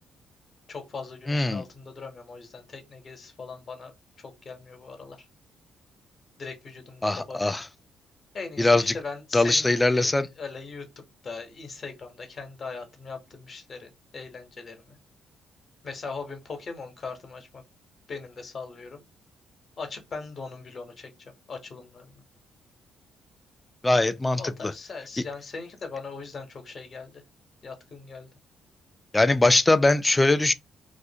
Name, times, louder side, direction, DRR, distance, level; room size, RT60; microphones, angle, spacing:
voice 1, 0.7-5.3 6.4-7.5 8.3-10.1 10.4-15.0 15.8-17.6 18.1-19.0 19.8-22.2 24.4-27.2 27.6-28.3, left 4 dB, 45° left, 0.8 m, -40 dB
voice 2, 1.3-1.6 7.0-7.7 8.6-8.9 9.3-10.3 23.8-24.7 29.1-30.5, left 2 dB, 15° left, 0.3 m, -21 dB
2.4 x 2.1 x 2.7 m
cardioid pair, 90°, 0 cm